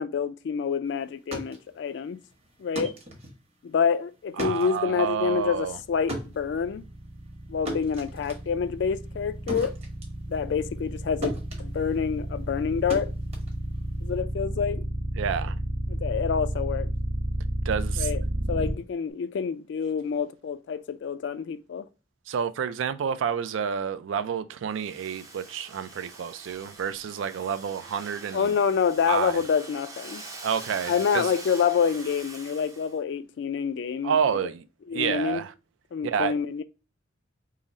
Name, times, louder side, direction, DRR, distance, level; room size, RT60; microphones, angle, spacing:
voice 1, 0.0-2.2 2.6-3.0 3.6-6.9 7.5-9.7 10.3-13.1 14.0-14.8 16.0-16.9 18.0-18.2 18.5-21.9 28.3-30.2 30.9-34.4 34.9-35.4 35.9-36.6, left 6 dB, 65° left, 0.3 m, -27 dB
sound 1, 1.1-11.0 11.2-14.2, right 1 dB, 35° right, 1.0 m, -38 dB
voice 2, 4.4-5.8 15.2-15.6 17.6-18.1 22.3-28.6 29.1-29.4 30.4-31.3 34.0-34.6 34.9-35.5 36.0-36.3, right 7 dB, 90° right, 0.3 m, -29 dB
sound 2, 5.5-18.7, right 1 dB, 70° right, 0.8 m, -31 dB
Domestic sounds home sounds, 24.7-33.0, right 3 dB, 20° right, 0.5 m, -44 dB
3.7 x 2.0 x 4.0 m
head